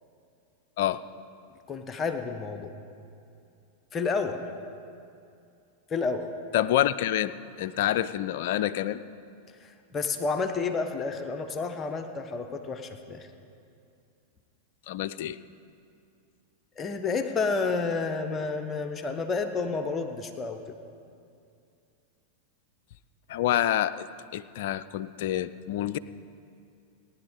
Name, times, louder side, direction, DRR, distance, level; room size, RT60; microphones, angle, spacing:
voice 1, 1.7-2.7 3.9-4.4 5.9-6.3 9.6-13.3 16.8-20.8, left 4 dB, 25° left, 6 dB, 0.9 m, -30 dB
voice 2, 6.5-9.0 14.9-15.4 23.3-24.0 24.3-26.0, left 12 dB, 50° left, 15 dB, 0.4 m, -27 dB
18.5 x 10.5 x 3.7 m, 2.5 s
figure-of-eight pair, 90°, 0 cm